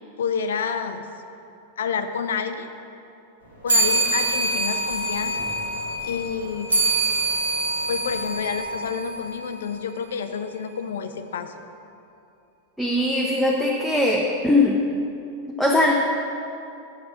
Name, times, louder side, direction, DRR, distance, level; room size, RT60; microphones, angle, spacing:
voice 1, 0.2-1.1 1.8-2.7 3.6-5.4 6.0-6.8 7.9-11.5, left 6 dB, 65° left, 9 dB, 0.4 m, -29 dB
sound 1, 3.7-9.5, right 2 dB, 75° right, 1.8 m, -25 dB
voice 2, 12.8-14.8 15.5-15.9, left 2 dB, ahead, -4 dB, 0.7 m, -20 dB
7.8 x 5.2 x 5.7 m, 2.7 s
figure-of-eight pair, 90°, 0 cm